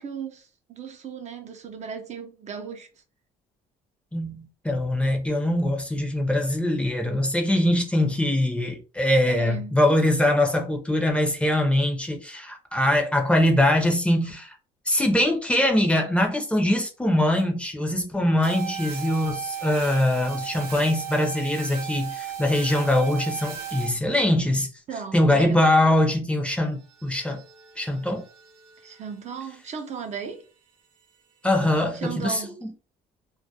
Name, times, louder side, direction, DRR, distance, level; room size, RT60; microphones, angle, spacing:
voice 1, 0.0-2.9 7.5-7.6 9.3-9.8 24.9-25.6 28.8-30.4 31.9-32.6, right 6 dB, 45° right, 0.4 m, -36 dB
voice 2, 4.1-14.5 14.9-24.7 25.1-27.4 27.8-28.2 31.4-32.4, left 1 dB, 5° left, 0.5 m, -22 dB
sound 1, 18.4-23.9 26.9-29.1, right 8 dB, 75° right, 0.7 m, -36 dB
2.2 x 2.1 x 2.6 m
cardioid pair, 110°, 17 cm